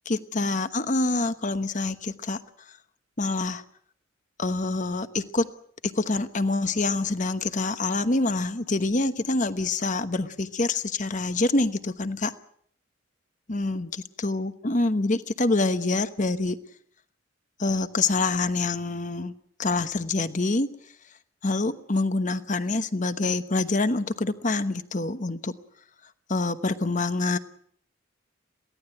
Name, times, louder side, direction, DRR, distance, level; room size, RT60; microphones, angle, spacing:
voice 1, 0.1-2.4 3.2-3.6 4.4-5.5 5.8-12.3 13.5-16.6 17.6-19.3 19.6-20.7 21.4-25.5 26.3-27.4, left 2 dB, 35° left, 11 dB, 1.1 m, -26 dB
23.0 x 16.5 x 7.9 m, 0.64 s
head